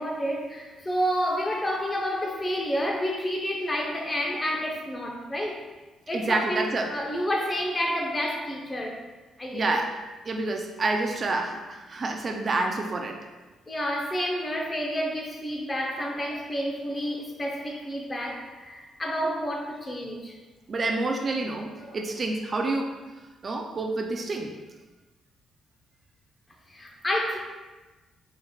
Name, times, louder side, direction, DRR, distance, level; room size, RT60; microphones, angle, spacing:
voice 1, 0.0-5.6 6.1-9.0 9.4-9.8 13.7-20.3 21.8-22.0 26.7-27.4, equal, 25° left, 0 dB, 0.7 m, -29 dB
voice 2, 6.1-6.9 9.5-9.9 10.2-13.2 20.7-22.9 23.4-24.5, right 2 dB, 40° right, 3 dB, 0.4 m, -28 dB
4.4 x 3.5 x 2.3 m, 1.2 s
cardioid pair, 90°, 0 cm